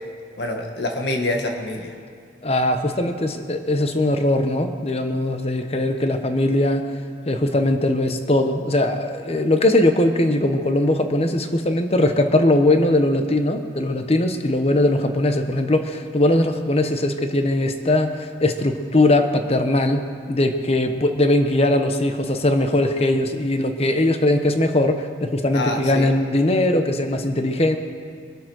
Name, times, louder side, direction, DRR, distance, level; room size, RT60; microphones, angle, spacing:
voice 1, 0.4-1.9 25.5-26.1, left 2 dB, 70° left, 3 dB, 1.7 m, -26 dB
voice 2, 2.4-6.9 7.3-27.8, left 1 dB, 35° left, 7 dB, 1.0 m, -20 dB
23.5 x 8.2 x 6.3 m, 2.2 s
head